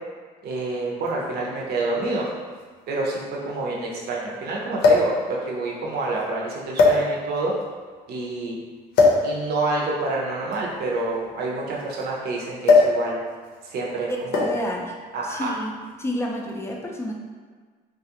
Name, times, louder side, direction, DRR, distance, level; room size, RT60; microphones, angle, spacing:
voice 1, 0.4-2.3 2.9-7.5 8.1-8.6 9.2-13.2 13.6-14.5 15.1-15.5, right 2 dB, 70° right, -3 dB, 0.7 m, -28 dB
sound 1, 1.1-1.2 2.3-2.4 2.6-2.7 4.8-5.2 6.0-6.2 6.7-7.4 8.9-9.3 10.4-12.0 12.6-13.0 13.3-13.6 14.3-14.7 15.7-15.9, left 3 dB, 75° left, 0.7 m, -19 dB
voice 2, 14.3-14.9 15.2-15.7 16.0-17.1, left 1 dB, 15° left, 0 dB, 0.4 m, -30 dB
3.2 x 2.4 x 2.8 m, 1.5 s
cardioid pair, 110°, 17 cm